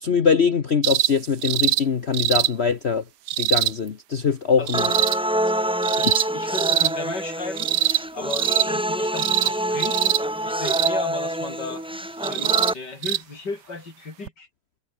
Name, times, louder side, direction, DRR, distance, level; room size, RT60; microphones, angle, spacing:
voice 1, 0.0-3.0 3.4-4.9 6.0-6.1, left 6 dB, 40° left, 1.1 m, -22 dB
sound 1, 0.8-1.1 1.4-1.8 2.1-2.5 3.3-3.7 4.7-5.2 5.8-6.3 6.5-6.9 7.6-8.0 8.3-8.7 9.2-9.5 9.8-10.2 10.6-10.9 12.2-12.7 13.0-13.2 14.3-14.4, right 13 dB, 70° right, 1.3 m, -22 dB
sound 2, 4.7-12.7, equal, 5° right, 1.2 m, -26 dB
voice 2, 6.0-7.7 8.1-10.1 10.5-11.8 12.3-14.5, left 3 dB, 65° left, 5.3 m, -35 dB
omnidirectional pair, 2.0 m